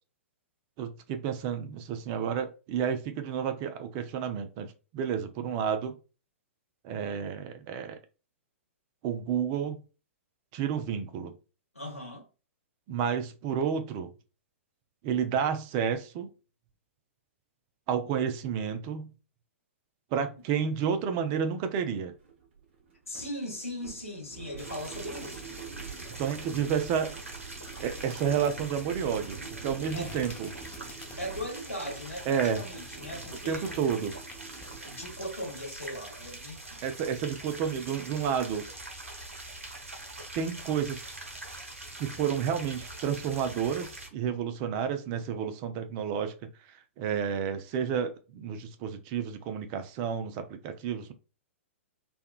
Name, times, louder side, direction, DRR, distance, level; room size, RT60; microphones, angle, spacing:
voice 1, 0.8-6.0 6.8-8.0 9.0-9.8 10.5-11.3 12.9-14.1 15.0-16.3 17.9-19.1 20.1-22.1 26.2-27.1 27.8-30.5 32.3-32.6 33.5-34.1 36.8-38.7 40.3-41.1 42.0-46.3 47.0-51.1, right 7 dB, 35° right, 0.4 m, -30 dB
voice 2, 11.7-12.3 23.1-25.5 29.9-30.1 31.2-33.8 34.9-36.8, equal, 90° left, 1.2 m, -39 dB
sound 1, 20.5-20.6 20.9-35.6, right 6 dB, 55° right, 1.0 m, -47 dB
sound 2, 24.6-44.1, right 2 dB, 80° right, 0.8 m, -43 dB
sound 3, 27.6-31.6 32.1-34.7, left 5 dB, 15° left, 0.7 m, -50 dB
3.5 x 2.2 x 2.2 m
figure-of-eight pair, 110°, 7 cm